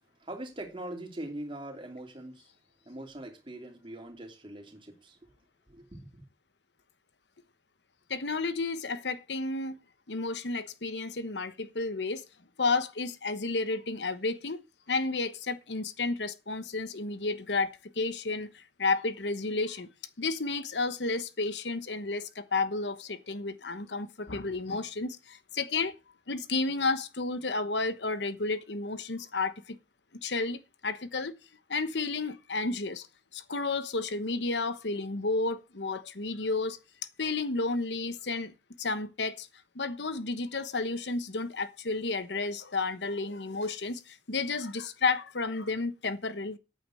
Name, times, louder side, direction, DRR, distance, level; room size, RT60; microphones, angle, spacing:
voice 1, 0.2-2.5 2.8-5.3 5.7-6.2, right 1 dB, 30° right, 2.9 m, -42 dB
voice 2, 8.1-9.8 10.1-12.2 12.6-14.6 14.9-19.9 20.2-25.9 26.3-29.8 30.2-31.3 31.7-33.1 33.3-36.8 37.2-38.5 38.8-39.5 39.7-46.6, left 3 dB, 85° left, 1.1 m, -32 dB
9.6 x 9.1 x 7.7 m
head